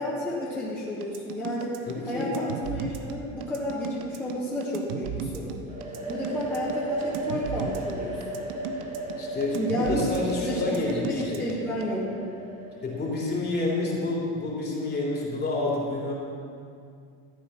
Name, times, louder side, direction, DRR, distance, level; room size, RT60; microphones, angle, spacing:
voice 1, 0.0-1.8 2.1-5.6 6.1-8.4 9.6-12.1, left 1 dB, 5° left, -9 dB, 2.4 m, -31 dB
sound 1, 1.0-11.9, right 6 dB, 80° right, 1.1 m, -35 dB
voice 2, 1.9-2.3 9.2-11.5 12.8-16.1, left 2 dB, 25° left, -4 dB, 3.7 m, -29 dB
sound 2, 5.7-13.3, right 1 dB, 20° right, 2.0 m, -35 dB
14.0 x 8.5 x 5.9 m, 2.3 s
supercardioid pair, 115°, 36 cm